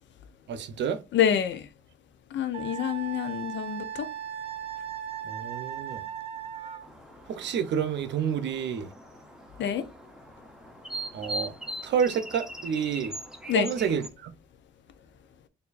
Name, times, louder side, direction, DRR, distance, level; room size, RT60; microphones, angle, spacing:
voice 1, 0.5-1.0 5.2-6.1 7.3-8.9 11.1-11.5 11.8-13.2 13.5-14.3, right 7 dB, 65° right, 0.7 m, -29 dB
voice 2, 1.1-1.7 2.3-4.1 9.6-9.8 13.5-13.7, left 9 dB, 65° left, 0.7 m, -27 dB
Wind instrument woodwind instrument, 2.5-6.9, right 10 dB, 30° right, 1.1 m, -37 dB
sound 1, 6.8-14.1, right 1 dB, 5° right, 0.8 m, -41 dB
4.4 x 2.7 x 2.5 m
cardioid pair, 90°, 20 cm